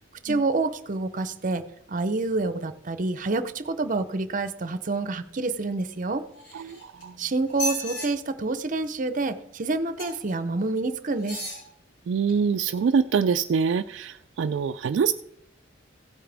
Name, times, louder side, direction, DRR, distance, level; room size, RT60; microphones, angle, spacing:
voice 1, 0.2-1.6 1.9-6.2 7.2-11.4, right 3 dB, 45° right, 12 dB, 0.7 m, -27 dB
sound 1, 6.3-7.0 7.5-8.1 10.0-10.3 11.2-11.6 12.3-12.4, left 1 dB, 75° left, 5.2 m, -34 dB
voice 2, 6.5-7.1 12.1-15.1, right 6 dB, 70° right, 8 dB, 0.3 m, -25 dB
16.0 x 8.8 x 3.4 m, 0.75 s
head